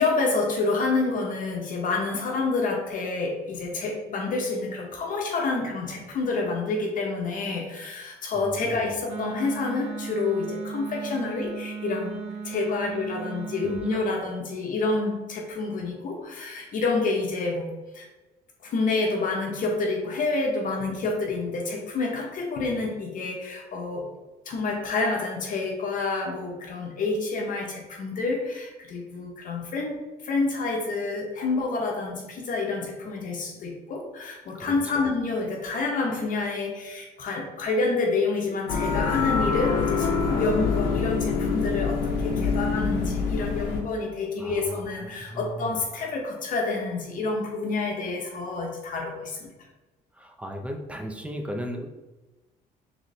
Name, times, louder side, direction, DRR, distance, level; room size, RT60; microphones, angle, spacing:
voice 1, 0.0-17.7 17.9-18.1 18.6-24.1 24.5-30.0 30.2-49.5, left 3 dB, 50° left, 0 dB, 0.8 m, -28 dB
voice 2, 8.4-8.9 13.6-14.0 34.5-35.1 44.4-45.7 50.2-51.9, equal, 5° right, 3 dB, 0.5 m, -37 dB
Wind instrument woodwind instrument, 9.1-14.2, right 6 dB, 90° right, 0.6 m, -36 dB
sound 1, 38.7-43.8, left 5 dB, 85° left, 0.7 m, -25 dB
4.1 x 3.1 x 3.1 m, 1.1 s
cardioid pair, 110°, 17 cm